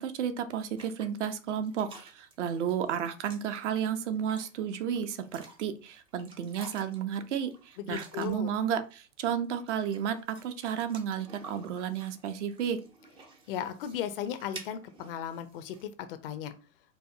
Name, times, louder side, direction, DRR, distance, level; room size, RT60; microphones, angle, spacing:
voice 1, 0.0-12.8, right 8 dB, 55° right, 9 dB, 0.7 m, -32 dB
sound 1, 0.8-8.6 9.4-15.8, right 3 dB, 15° right, 0.4 m, -52 dB
voice 2, 7.8-8.5 13.5-16.5, left 9 dB, 45° left, 10 dB, 0.5 m, -36 dB
4.5 x 2.1 x 2.7 m, 0.34 s
figure-of-eight pair, 100°, 42 cm